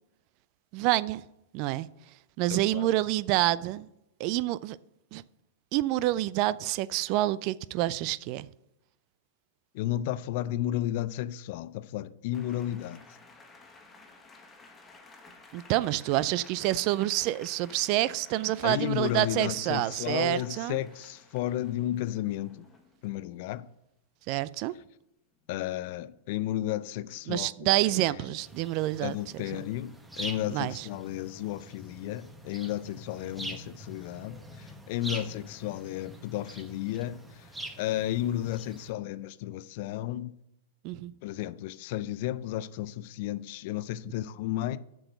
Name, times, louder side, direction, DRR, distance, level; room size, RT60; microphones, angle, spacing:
voice 1, 0.7-1.2 1.5-1.9 2.4-3.9 4.2-4.8 5.1-5.2 5.7-8.5 15.5-20.8 24.3-24.7 27.3-29.5 30.5-30.9 40.8-41.1, right 16 dB, 45° right, 0.4 m, -28 dB
voice 2, 2.5-2.9 9.7-13.0 18.6-22.6 23.0-23.7 25.5-28.0 29.0-37.5 37.8-40.3 41.2-44.8, left 13 dB, 50° left, 0.4 m, -33 dB
sound 1, 12.3-23.1 25.0-25.1 25.4-25.7 29.7-29.9, left 3 dB, 15° left, 1.5 m, -54 dB
sound 2, 28.4-38.9, right 1 dB, 5° right, 1.2 m, -44 dB
7.6 x 6.2 x 6.5 m
figure-of-eight pair, 100°, 0 cm